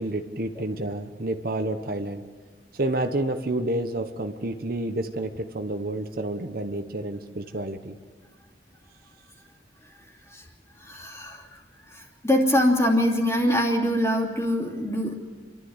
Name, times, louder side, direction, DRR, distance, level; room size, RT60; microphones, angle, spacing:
voice 1, 0.0-2.2 2.7-8.0, right 1 dB, 55° right, 7 dB, 1.1 m, -29 dB
voice 2, 10.8-11.6 11.9-15.1, equal, 15° left, 0 dB, 2.9 m, -24 dB
29.0 x 12.5 x 8.0 m, 1.5 s
head